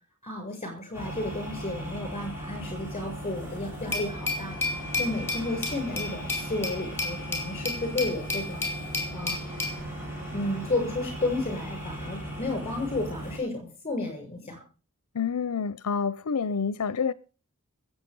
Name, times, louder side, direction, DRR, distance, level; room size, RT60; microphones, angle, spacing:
voice 1, 0.2-4.5 5.0-8.6 9.1-9.6 10.3-14.6, left 2 dB, 25° left, 7.1 m, -32 dB
sound 1, 0.9-13.4, right 1 dB, 10° right, 6.8 m, -38 dB
Glass, 3.9-9.8, left 3 dB, 10° left, 5.1 m, -32 dB
voice 2, 15.1-17.1, left 6 dB, 85° left, 0.6 m, -28 dB
21.0 x 8.2 x 5.4 m
head